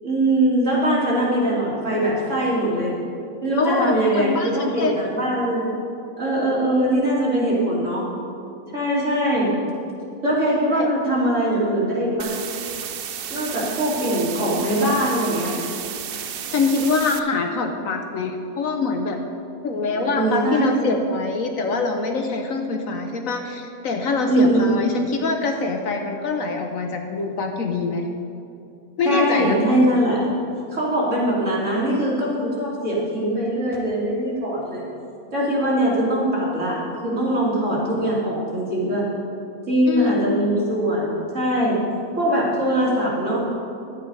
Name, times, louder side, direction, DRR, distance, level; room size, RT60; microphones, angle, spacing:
voice 1, 0.0-2.9 3.4-5.7 6.2-8.1 8.7-9.5 10.2-12.4 13.3-15.6 19.9-20.9 24.3-24.8 29.0-30.2 30.7-34.8 35.3-39.0 39.7-41.8 42.2-43.4, right 1 dB, 50° right, -6 dB, 3.3 m, -22 dB
voice 2, 3.6-4.9 10.8-10.9 14.0-14.2 16.5-19.2 19.6-28.1 29.0-29.6 39.9-40.2, left 4 dB, 60° left, 4 dB, 1.2 m, -24 dB
sound 1, 12.2-17.2, right 8 dB, 85° right, 0.5 m, -32 dB
12.0 x 8.6 x 5.5 m, 2.6 s
omnidirectional pair, 1.7 m